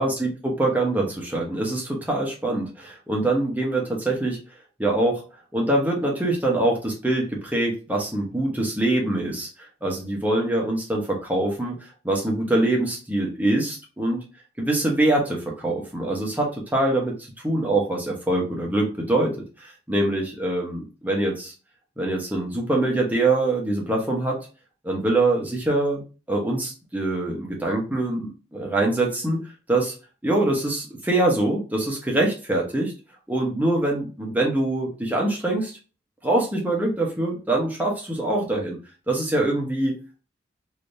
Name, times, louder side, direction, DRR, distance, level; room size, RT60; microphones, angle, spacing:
voice 1, 0.0-4.4 4.8-5.2 5.5-9.5 9.8-11.7 12.0-14.2 14.6-19.3 19.6-21.5 22.0-24.4 24.8-26.0 26.3-29.4 29.7-29.9 30.2-32.9 33.3-35.7 36.2-38.8 39.1-39.9, right 2 dB, 10° right, -2 dB, 1.0 m, -24 dB
3.4 x 2.9 x 2.6 m, 0.33 s
head